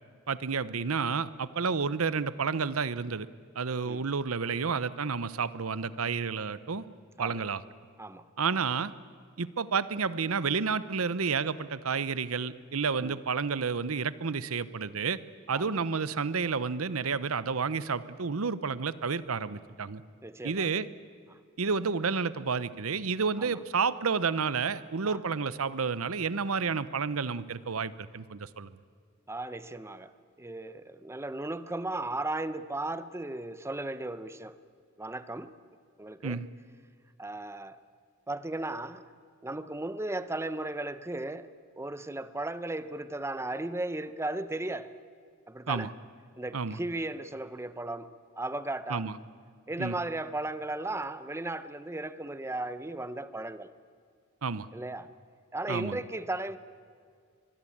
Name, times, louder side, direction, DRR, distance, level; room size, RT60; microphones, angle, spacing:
voice 1, 0.3-3.3 3.6-6.8 7.2-7.6 8.4-8.9 9.4-15.2 15.5-20.0 20.4-20.9 21.6-28.7 36.2-36.5 45.7-45.9 46.5-46.8 48.9-49.2 49.8-50.0 54.4-54.7 55.7-56.0, right 5 dB, 85° right, 0.8 m, -30 dB
voice 2, 20.2-20.7 23.4-23.6 25.0-25.2 29.3-30.1 30.4-34.5 35.0-35.5 36.0-36.4 37.2-37.8 38.3-39.1 39.4-41.5 41.8-44.9 45.5-45.9 46.4-49.1 49.7-53.7 54.7-55.1 55.5-56.6, right 2 dB, 15° right, 0.8 m, -36 dB
23.5 x 22.0 x 8.7 m
head